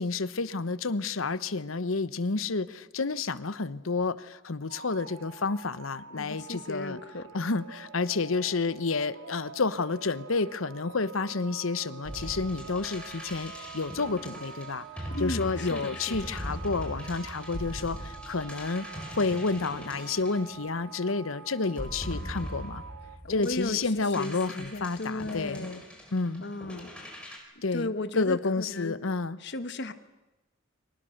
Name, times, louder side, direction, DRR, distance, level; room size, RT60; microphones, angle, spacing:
voice 1, 0.0-7.0 7.3-18.9 19.1-22.8 23.3-25.7 26.1-26.4 27.6-29.4, left 3 dB, 80° left, 15 dB, 1.0 m, -30 dB
sound 1, 4.7-23.2, right 5 dB, 75° right, 2.1 m, -46 dB
voice 2, 6.1-7.3 15.1-16.2 23.2-25.8 26.4-26.9 27.7-28.9 29.4-29.9, left 2 dB, 55° left, 10 dB, 1.4 m, -35 dB
sound 2, 12.0-21.1 21.7-27.4, equal, 5° left, 4.7 m, -41 dB
30.0 x 24.5 x 6.6 m, 1.0 s
head